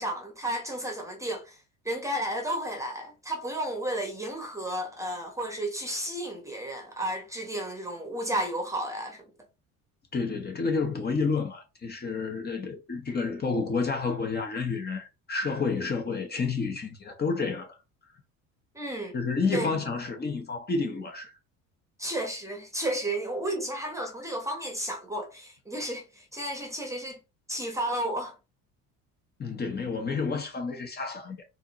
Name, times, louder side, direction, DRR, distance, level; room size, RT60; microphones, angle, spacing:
voice 1, 0.0-1.6 1.8-9.2 18.7-19.1 19.5-19.7 22.0-27.2 27.5-28.3, right 1 dB, 10° right, 1.0 m, -32 dB
voice 2, 10.1-17.8 19.1-21.3 29.4-31.4, left 4 dB, 30° left, 1.1 m, -30 dB
4.1 x 2.7 x 3.0 m
cardioid pair, 105°, 34 cm